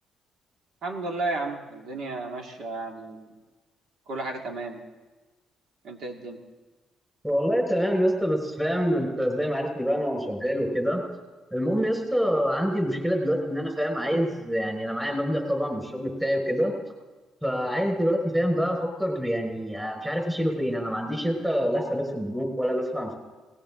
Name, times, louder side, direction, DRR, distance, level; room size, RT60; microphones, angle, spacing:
voice 1, 0.8-3.3 4.1-4.8 5.8-6.4, right 2 dB, 75° right, 2 dB, 2.3 m, -33 dB
voice 2, 7.2-11.0 11.5-16.7 17.4-23.1, equal, 10° right, 1 dB, 5.3 m, -26 dB
19.5 x 17.5 x 3.8 m, 1.2 s
cardioid pair, 90°, 0 cm